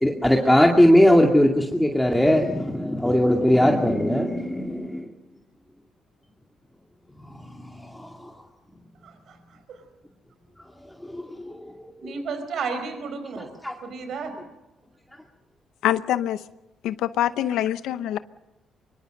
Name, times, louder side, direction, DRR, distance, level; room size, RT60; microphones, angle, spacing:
voice 1, 0.0-5.1 7.2-8.3 10.9-11.7 13.4-13.7, left 1 dB, 5° left, 1 dB, 2.3 m, -20 dB
voice 2, 9.0-9.8 12.0-13.5 13.8-14.4, right 5 dB, 70° right, 8 dB, 4.4 m, -33 dB
voice 3, 15.8-16.4 16.8-18.2, left 12 dB, 85° left, 13 dB, 0.7 m, -24 dB
24.0 x 23.5 x 6.6 m, 0.95 s
cardioid pair, 90°, 0 cm